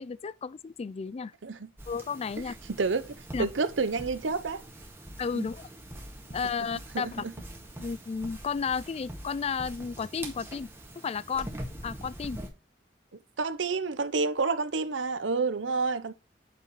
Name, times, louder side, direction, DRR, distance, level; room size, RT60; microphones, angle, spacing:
voice 1, 0.0-1.3 1.9-2.5 3.3-3.5 5.2-5.6 6.3-7.2 7.8-10.7 11.0-11.5 11.8-12.4, left 5 dB, 35° left, 0.3 m, -33 dB
sound 1, 1.8-12.5, right 1 dB, 15° right, 1.8 m, -44 dB
voice 2, 2.8-4.6 5.4-5.5 6.9-7.3 13.4-16.1, right 4 dB, 80° right, 0.7 m, -29 dB
8.7 x 6.7 x 3.1 m
head